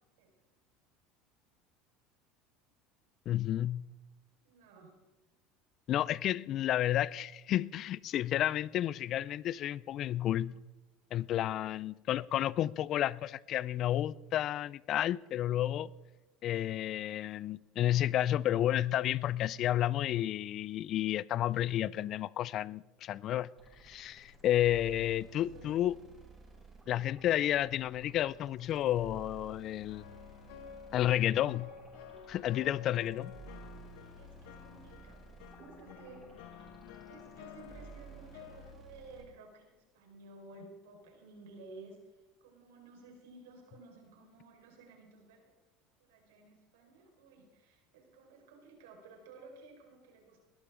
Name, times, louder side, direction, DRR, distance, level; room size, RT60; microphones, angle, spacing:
voice 1, 3.3-3.9 5.9-10.5 11.1-15.9 16.4-23.5 23.8-26.0 26.9-30.1 30.9-31.7 32.3-33.3, left 12 dB, 50° left, 0.4 m, -31 dB
voice 2, 4.4-5.0 11.5-11.6 25.2-25.7 32.6-32.8 33.9-35.2 35.6-36.7 37.1-42.0 42.4-45.4 46.0-50.4, right 3 dB, 80° right, 4.6 m, -55 dB
sound 1, 23.6-39.2, right 3 dB, 20° right, 6.3 m, -54 dB
sound 2, 29.9-38.7, left 9 dB, 75° left, 1.5 m, -51 dB
21.0 x 12.5 x 3.8 m
hypercardioid pair, 90°, 0 cm